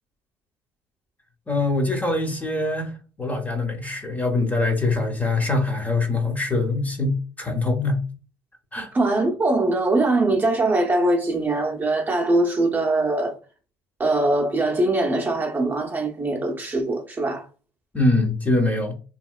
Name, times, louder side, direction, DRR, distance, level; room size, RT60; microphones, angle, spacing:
voice 1, 1.5-8.0 8.7-8.9 17.9-18.9, left 2 dB, 20° left, 0.8 m, -23 dB
voice 2, 8.9-13.4 14.0-17.5, right 2 dB, 20° right, 0.7 m, -22 dB
2.9 x 2.8 x 2.3 m
cardioid pair, 100°, 9 cm